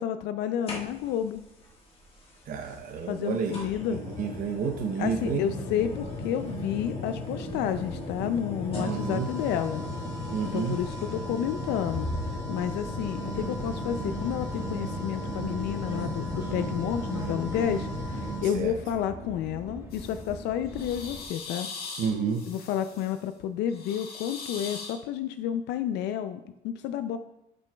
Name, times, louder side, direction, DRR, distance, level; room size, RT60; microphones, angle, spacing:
voice 1, 0.0-1.4 3.1-4.0 5.0-9.8 10.4-12.1 12.5-22.0 22.5-27.2, left 9 dB, 85° left, 9 dB, 0.4 m, -31 dB
sound 1, 0.7-1.3 2.6-2.7 3.5-18.5, left 1 dB, 35° left, 1.6 m, -35 dB
voice 2, 2.5-3.6 3.9-5.4 8.8-9.3 10.3-10.8 18.4-18.7 22.0-22.4, right 6 dB, 55° right, 3 dB, 0.7 m, -30 dB
Subway metro underground, 13.2-21.2, right 1 dB, 15° right, 1.5 m, -42 dB
sound 2, 19.9-20.3 20.7-23.2 23.7-25.0, left 4 dB, 70° left, 1.6 m, -41 dB
11.0 x 6.1 x 2.3 m, 0.86 s
cardioid pair, 110°, 17 cm